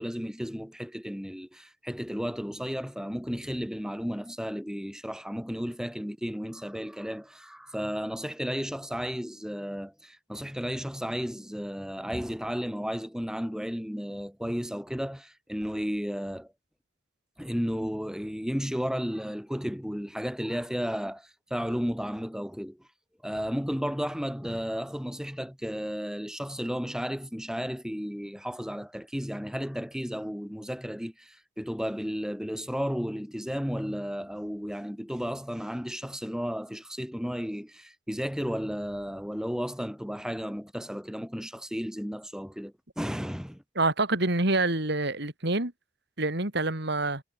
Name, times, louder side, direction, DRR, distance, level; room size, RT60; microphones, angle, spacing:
voice 1, 0.0-16.5 17.4-22.8 23.2-43.6, equal, 5° right, 5.3 m, -33 dB
voice 2, 43.8-45.7 46.2-47.2, right 2 dB, 55° right, 3.6 m, -26 dB
head